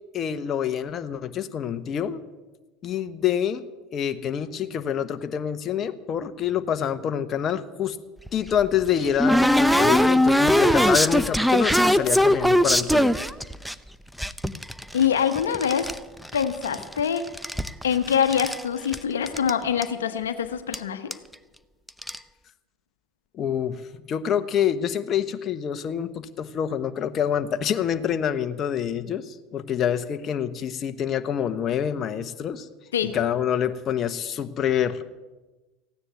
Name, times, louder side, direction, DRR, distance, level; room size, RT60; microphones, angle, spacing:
voice 1, 0.1-2.2 2.8-3.6 3.9-8.0 8.3-13.2 23.3-23.8 24.1-32.7 33.1-35.0, left 9 dB, 40° left, 9 dB, 1.1 m, -26 dB
sound 1, 8.3-13.7 14.2-16.0 16.2-17.0 17.3-18.6 18.9-19.0 19.3-19.5 19.8-19.9 20.7-20.8 21.1-21.3 21.9-22.2, equal, ahead, 0.7 m, -21 dB
voice 2, 14.9-15.9 16.3-17.3 17.8-21.1 32.9-33.2, left 8 dB, 90° left, 10 dB, 1.0 m, -24 dB
15.5 x 9.8 x 9.3 m, 1.2 s
hypercardioid pair, 85°, 0 cm